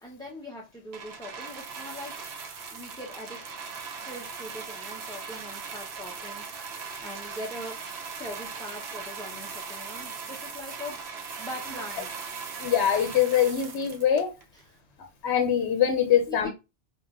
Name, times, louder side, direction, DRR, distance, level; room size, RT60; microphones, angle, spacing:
voice 1, 0.0-2.2 2.7-3.4 4.0-11.0 11.4-12.1 14.7-14.8 16.3-16.5, left 1 dB, 5° left, 0.5 m, -41 dB
sound 1, 0.9-14.6 15.4-15.5, right 5 dB, 70° right, 0.9 m, -39 dB
voice 2, 12.6-14.3 15.2-16.5, left 9 dB, 80° left, 0.9 m, -23 dB
4.7 x 2.4 x 2.4 m
omnidirectional pair, 1.1 m